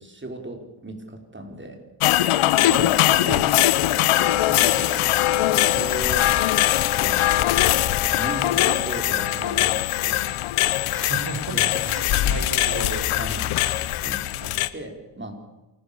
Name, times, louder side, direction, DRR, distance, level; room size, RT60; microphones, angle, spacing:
voice 1, 0.0-1.8 2.7-2.9 4.2-5.0 5.5-5.9 7.0-7.2 7.6-10.4 10.8-11.1 11.5-12.3 13.2-15.4, right 1 dB, 25° right, 4 dB, 5.2 m, -37 dB
sound 1, 2.0-14.7, left 14 dB, 90° left, 1.0 m, -21 dB
voice 2, 3.1-4.2 5.7-6.3 10.9-13.1, right 3 dB, 45° right, 6 dB, 5.5 m, -34 dB
sound 2, 4.3-5.5 7.4-7.9 9.1-9.6 10.5-11.3 11.6-11.7, left 3 dB, 25° left, 4.5 m, -44 dB
28.0 x 13.0 x 7.1 m, 1.1 s
supercardioid pair, 60°, 49 cm